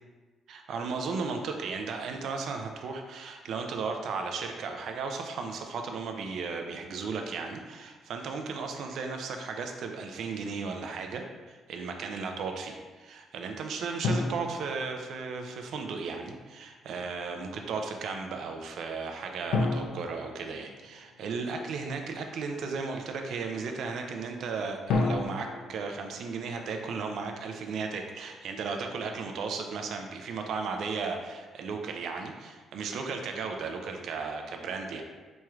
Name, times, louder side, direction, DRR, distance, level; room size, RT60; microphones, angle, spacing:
voice 1, 0.5-35.0, right 4 dB, 60° right, 4 dB, 0.4 m, -35 dB
sound 1, 14.0-15.7 19.5-21.4 24.9-27.2, left 3 dB, 85° left, 0.4 m, -32 dB
4.4 x 3.0 x 2.4 m, 1.3 s
cardioid pair, 170°, 0 cm